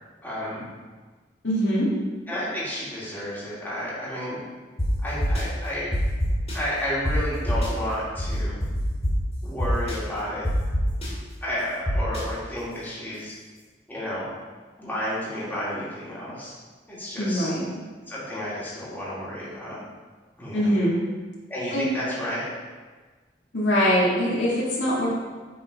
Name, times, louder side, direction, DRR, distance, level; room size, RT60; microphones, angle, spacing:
voice 1, 0.2-0.6 2.3-4.4 5.0-5.9 6.5-8.6 9.4-10.5 11.4-13.3 13.9-14.3 14.8-16.5 16.9-17.5 18.1-19.8 20.4-20.7 21.5-22.5, equal, 10° left, -9 dB, 2.4 m, -31 dB
voice 2, 1.4-1.9 17.2-17.6 20.5-21.0 21.7-21.9 23.5-25.1, equal, 85° left, -7 dB, 2.5 m, -22 dB
sound 1, 4.8-4.9 5.2-5.4 5.9-6.5 7.0-7.1 7.5-7.7 8.2-9.1 9.6-9.9 10.4-11.1 11.9-12.2, equal, 35° left, 2.5 m, -25 dB
8.5 x 4.3 x 4.8 m, 1.4 s
head